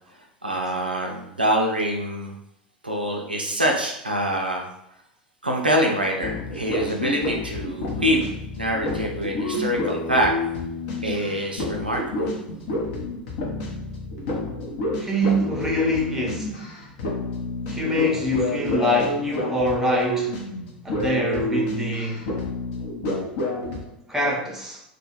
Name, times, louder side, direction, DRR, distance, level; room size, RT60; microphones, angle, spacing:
voice 1, 0.4-2.3 2.8-4.7 5.4-8.3 8.5-10.3 11.0-12.3, equal, 90° right, 0.4 m, -25 dB
sound 1, 6.2-23.9, left 1 dB, 55° left, 0.7 m, -29 dB
voice 2, 15.0-16.6 17.7-20.4 20.8-22.3 24.1-24.8, left 1 dB, 10° right, 0.7 m, -24 dB
2.2 x 2.1 x 2.9 m
figure-of-eight pair, 85°, 5 cm